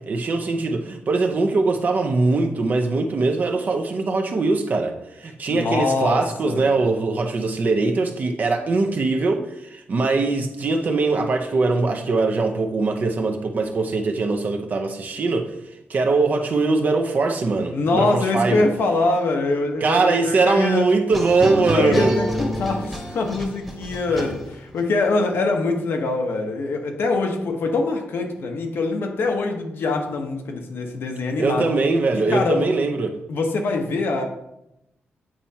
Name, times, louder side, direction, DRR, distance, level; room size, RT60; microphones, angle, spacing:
voice 1, 0.0-15.5 15.9-18.7 19.8-22.2 31.4-33.2, right 3 dB, 45° right, 0.7 m, -21 dB
voice 2, 5.5-6.7 17.7-20.9 21.7-31.7 32.3-32.7 33.3-34.2, left 3 dB, 70° left, 0.9 m, -23 dB
sound 1, 21.1-24.8, equal, ahead, 1.1 m, -27 dB
8.8 x 4.4 x 2.8 m
wide cardioid pair, 135°, 4 cm